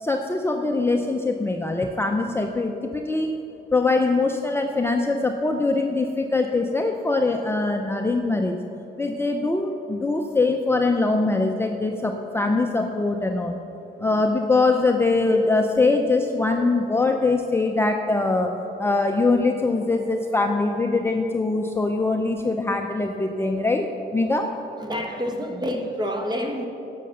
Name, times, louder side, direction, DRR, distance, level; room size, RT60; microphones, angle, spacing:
voice 1, 0.0-3.3 3.7-8.6 9.0-13.6 14.0-18.5 18.8-23.8 24.1-24.5, left 3 dB, 10° left, 3 dB, 0.6 m, -22 dB
voice 2, 24.8-26.7, equal, 20° right, 3 dB, 1.5 m, -28 dB
11.0 x 6.7 x 6.5 m, 2.8 s
cardioid pair, 90°, 20 cm